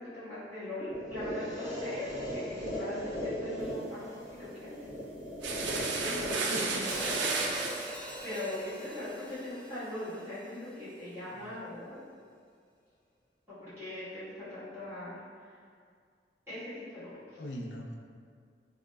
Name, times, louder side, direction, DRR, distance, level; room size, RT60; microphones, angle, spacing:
voice 1, 0.0-4.0 4.4-4.8 5.5-7.2 8.2-12.0 13.5-15.2 16.5-17.4, left 1 dB, 15° right, -18 dB, 1.3 m, -40 dB
sound 1, 0.9-8.9, equal, 20° left, 0.7 m, -39 dB
sound 2, 5.4-8.0, right 4 dB, 75° right, 0.3 m, -32 dB
voice 2, 6.5-8.0 17.4-18.0, left 1 dB, 75° left, 0 dB, 0.4 m, -42 dB
Hi-hat, 6.9-11.0, equal, 5° left, 0.3 m, -43 dB
5.0 x 2.1 x 2.2 m, 2.1 s
head